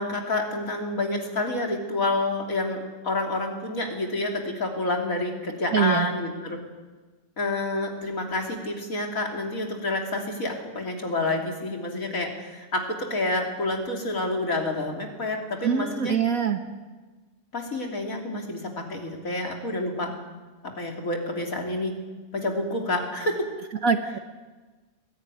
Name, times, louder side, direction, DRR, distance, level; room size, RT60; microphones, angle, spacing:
voice 1, 0.0-6.6 7.4-16.2 17.5-20.1 20.6-22.0 22.3-23.5, left 2 dB, 55° left, 2 dB, 3.5 m, -28 dB
voice 2, 5.7-6.1 15.6-16.6 23.8-24.2, right 7 dB, 60° right, 6 dB, 1.6 m, -23 dB
21.5 x 15.5 x 9.9 m, 1.3 s
omnidirectional pair, 1.7 m